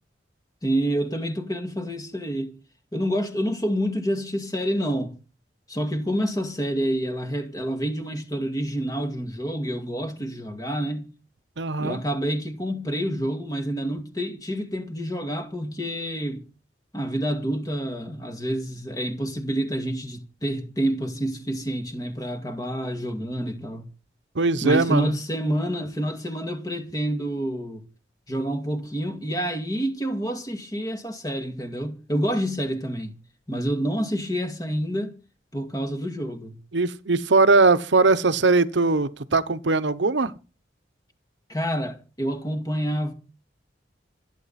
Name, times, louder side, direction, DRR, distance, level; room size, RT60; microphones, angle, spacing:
voice 1, 0.6-2.6 2.9-5.2 5.7-11.1 11.8-16.4 16.9-23.8 24.6-27.8 28.3-33.1 33.5-35.1 35.5-36.5 41.5-43.1, equal, 20° left, 2.2 m, -28 dB
voice 2, 11.6-12.0 24.3-25.2 36.7-40.3, right 3 dB, 85° right, 1.0 m, -20 dB
26.0 x 9.1 x 4.2 m
head